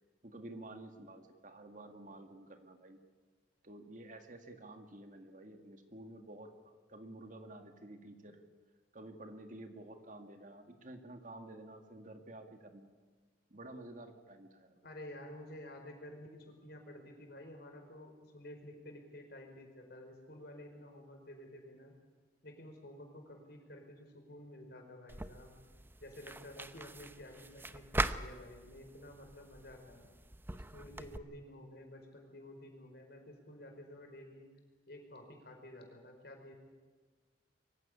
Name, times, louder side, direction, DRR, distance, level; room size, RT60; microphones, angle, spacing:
voice 1, 0.2-3.0 3.6-8.4 8.9-12.9 13.5-14.9, right 1 dB, 45° right, 6 dB, 2.0 m, -51 dB
voice 2, 14.8-21.9 22.4-25.5 26.0-30.1 30.5-34.5 34.9-36.5, left 1 dB, 55° left, 3 dB, 4.8 m, -51 dB
sound 1, 25.1-31.2, right 2 dB, 10° right, 0.7 m, -41 dB
23.5 x 15.5 x 9.7 m, 1.4 s
head